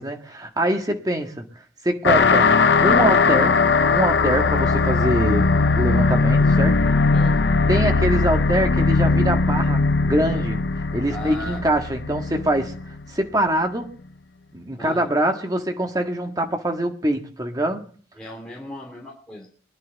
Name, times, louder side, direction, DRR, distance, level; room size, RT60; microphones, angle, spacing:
voice 1, 0.0-1.4 1.8-2.5 2.8-3.6 3.9-6.8 7.7-10.7 10.9-12.8 13.1-13.9 14.5-17.9, right 1 dB, 20° right, 1.7 m, -24 dB
sound 1, 2.0-13.0, left 4 dB, 75° left, 0.7 m, -19 dB
voice 2, 11.1-11.6 14.8-15.1 18.2-19.5, left 1 dB, 5° left, 3.1 m, -36 dB
22.5 x 11.0 x 4.0 m
head